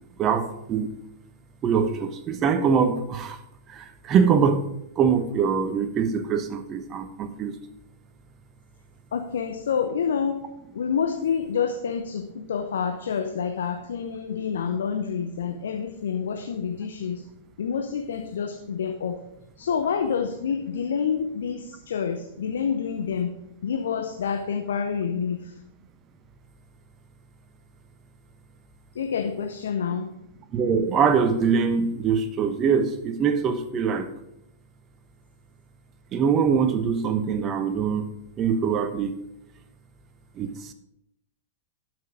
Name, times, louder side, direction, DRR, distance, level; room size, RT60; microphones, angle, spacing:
voice 1, 0.2-0.9 1.6-3.4 3.7-4.6 5.0-7.6 30.5-34.1 36.1-38.1 38.4-39.2 40.4-40.7, right 6 dB, 30° right, 9 dB, 1.0 m, -23 dB
voice 2, 9.1-10.4 10.7-17.2 17.6-19.2 19.6-23.3 23.6-25.4 29.0-30.0, left 7 dB, 65° left, 6 dB, 0.8 m, -28 dB
12.0 x 6.2 x 4.8 m, 0.82 s
figure-of-eight pair, 100°, 0 cm